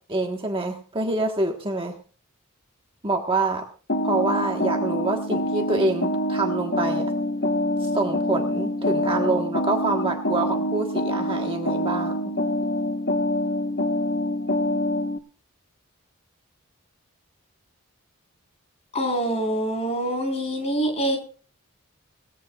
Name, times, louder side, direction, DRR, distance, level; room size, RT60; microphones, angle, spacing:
voice 1, 0.1-2.0 3.0-3.6 4.0-7.1 7.8-12.3, right 2 dB, 25° right, 2 dB, 1.3 m, -26 dB
sound 1, 3.9-15.2, left 1 dB, 50° left, 1.1 m, -25 dB
voice 2, 18.9-21.2, right 1 dB, 30° left, 4 dB, 4.1 m, -25 dB
20.0 x 14.5 x 2.4 m, 0.39 s
head